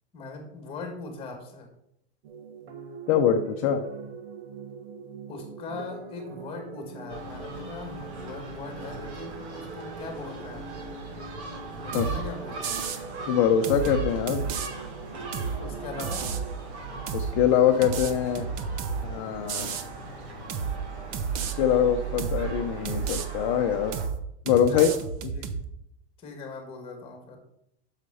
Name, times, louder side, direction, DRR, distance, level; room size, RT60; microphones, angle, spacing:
voice 1, 0.1-1.7 5.3-10.7 11.8-13.0 15.6-16.3 24.7-25.0 25.3-25.6 26.2-27.4, left 3 dB, 15° left, 4 dB, 2.0 m, -40 dB
sound 1, 2.2-16.5, right 4 dB, 70° right, 1.5 m, -42 dB
voice 2, 3.1-3.8 11.9-12.0 13.3-14.5 17.1-18.5 19.0-19.8 21.6-24.0 24.5-24.9, left 9 dB, 35° left, 4 dB, 0.7 m, -23 dB
Gull seagull, 7.1-24.1, right 5 dB, 90° right, 3.8 m, -39 dB
sound 2, 11.9-12.2 12.6-13.0 13.6-14.7 15.3-15.6 16.0-16.5 17.1-17.3 17.8-19.0 19.5-19.9 20.5-20.8 21.1-21.5 22.2-22.5 22.8-23.3 23.9-24.2 24.5-25.6, right 6 dB, 30° right, 0.6 m, -31 dB
8.0 x 6.6 x 5.6 m, 0.77 s
supercardioid pair, 170°, 32 cm